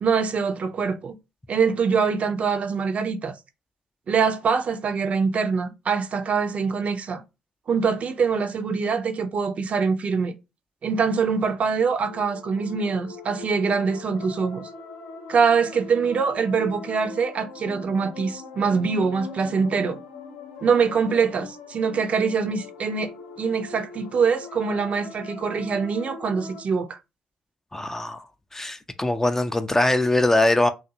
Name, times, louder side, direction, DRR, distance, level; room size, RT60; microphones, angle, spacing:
voice 1, 0.0-1.2 1.5-3.4 4.1-7.2 7.7-10.3 10.8-14.7 15.3-20.0 20.6-27.0, right 5 dB, 45° right, 0.5 m, -24 dB
sound 1, 12.0-26.6, left 4 dB, 75° left, 0.7 m, -41 dB
voice 2, 27.7-28.3 28.5-30.7, left 2 dB, 15° left, 0.3 m, -22 dB
2.5 x 2.4 x 2.8 m
hypercardioid pair, 50°, 3 cm